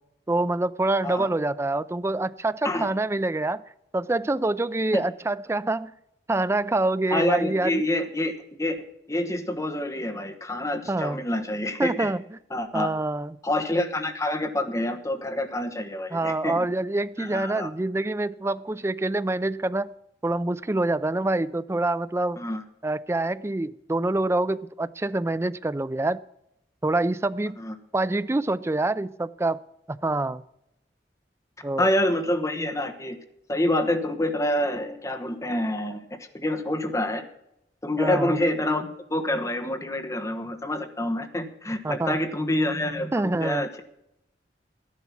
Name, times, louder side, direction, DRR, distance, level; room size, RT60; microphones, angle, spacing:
voice 1, 0.3-3.6 3.9-5.9 6.3-7.8 10.9-11.2 11.8-12.2 12.7-13.4 16.1-19.9 20.2-22.4 22.8-26.2 26.8-27.6 27.9-29.6 29.9-30.4 31.6-31.9 38.0-38.4 41.8-42.2 43.1-43.6, right 2 dB, 15° right, 15 dB, 0.4 m, -26 dB
voice 2, 7.1-12.1 12.5-12.9 13.4-16.7 17.2-17.7 22.4-22.6 27.6-27.7 31.8-33.2 33.5-36.0 36.3-37.2 37.8-43.8, left 1 dB, 20° left, 6 dB, 1.2 m, -27 dB
12.5 x 11.0 x 5.9 m, 0.83 s
head